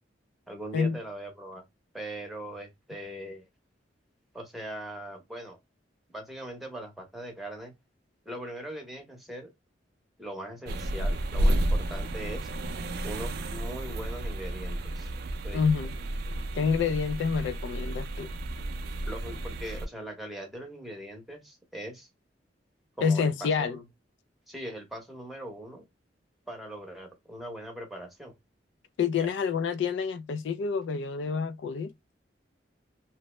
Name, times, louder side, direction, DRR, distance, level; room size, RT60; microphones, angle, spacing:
voice 1, 0.5-1.6 1.9-3.5 4.3-5.6 6.1-7.7 8.3-9.5 10.2-12.5 13.0-15.1 15.4-15.6 19.1-22.1 23.0-23.8 24.5-25.9 26.5-28.3 29.2-29.3, right 1 dB, ahead, 0.8 m, -40 dB
sound 1, 10.7-19.8, right 1 dB, 60° right, 0.4 m, -31 dB
voice 2, 15.5-15.9 16.5-18.3 23.0-23.8 29.0-31.9, left 6 dB, 75° left, 0.3 m, -28 dB
2.8 x 2.0 x 3.1 m
head